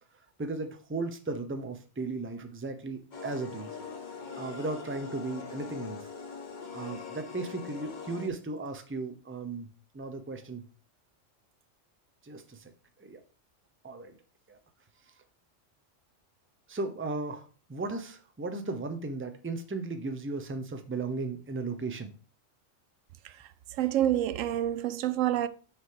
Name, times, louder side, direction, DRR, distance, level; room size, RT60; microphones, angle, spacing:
voice 1, 0.4-3.8 4.4-6.1 6.7-9.7 9.9-10.7 12.2-12.7 13.0-13.2 13.8-14.1 14.5-14.6 15.1-15.2 16.7-22.1, right 3 dB, 15° right, 0.6 m, -36 dB
sound 1, 3.1-8.3, left 5 dB, 40° left, 1.0 m, -42 dB
voice 2, 23.8-25.5, right 12 dB, 85° right, 1.0 m, -28 dB
6.3 x 5.0 x 4.8 m
omnidirectional pair, 1.3 m